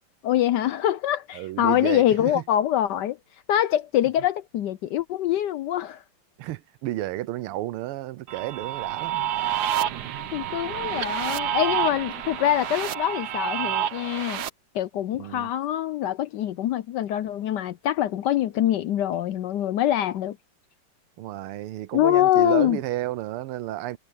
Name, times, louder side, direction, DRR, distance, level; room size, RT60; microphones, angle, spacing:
voice 1, 0.2-3.2 3.5-6.0 10.3-14.4 14.7-20.4 21.9-22.8, left 12 dB, 80° left, 0.9 m, -24 dB
voice 2, 1.3-2.4 6.4-9.3 9.9-10.3 15.2-15.5 21.2-24.0, right 15 dB, 80° right, 1.6 m, -32 dB
sound 1, 8.3-14.5, right 10 dB, 55° right, 1.3 m, -29 dB
omnidirectional pair, 2.4 m